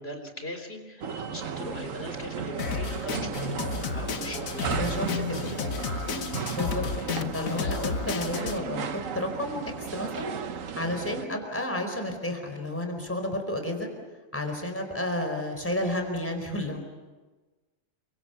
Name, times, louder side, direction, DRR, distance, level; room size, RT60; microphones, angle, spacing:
voice 1, 0.0-3.6 3.9-5.0 5.8-6.1, left 1 dB, 50° left, 5 dB, 3.8 m, -40 dB
sound 1, 1.0-11.3, right 7 dB, 75° right, 1.4 m, -35 dB
Drum kit, 2.6-8.6, left 6 dB, 85° left, 1.6 m, -32 dB
voice 2, 4.8-5.4 6.5-10.4 10.8-13.9 14.3-16.8, left 1 dB, 10° left, 4 dB, 4.4 m, -31 dB
30.0 x 24.5 x 7.0 m, 1.3 s
omnidirectional pair, 1.4 m